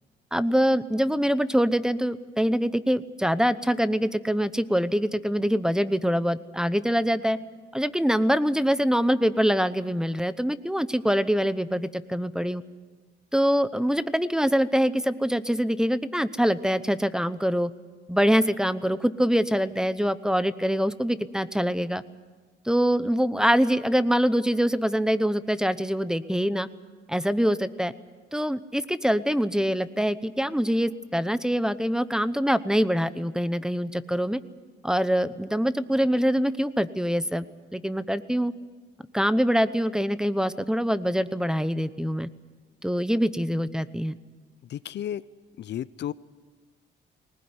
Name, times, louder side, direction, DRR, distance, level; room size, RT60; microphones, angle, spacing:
voice 1, 0.3-7.4 7.7-12.6 13.3-17.7 18.1-22.0 22.6-26.7 27.1-27.9 28.3-34.4 34.8-37.4 37.7-38.5 39.1-42.3 42.8-44.1, equal, 5° right, 15 dB, 0.9 m, -24 dB
voice 2, 44.7-45.2 45.6-46.1, left 11 dB, 60° left, 17 dB, 0.6 m, -32 dB
20.0 x 19.5 x 9.7 m, 1.4 s
cardioid pair, 90°, 20 cm